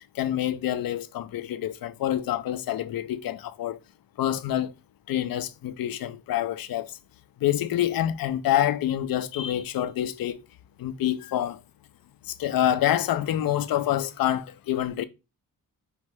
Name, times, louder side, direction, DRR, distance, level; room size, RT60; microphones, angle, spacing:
voice 1, 0.0-3.8 4.2-4.7 5.1-7.0 7.4-10.4 10.8-11.6 12.3-15.1, left 12 dB, 90° left, 0.5 m, -27 dB
4.8 x 3.1 x 3.3 m
wide cardioid pair, 130°, 34 cm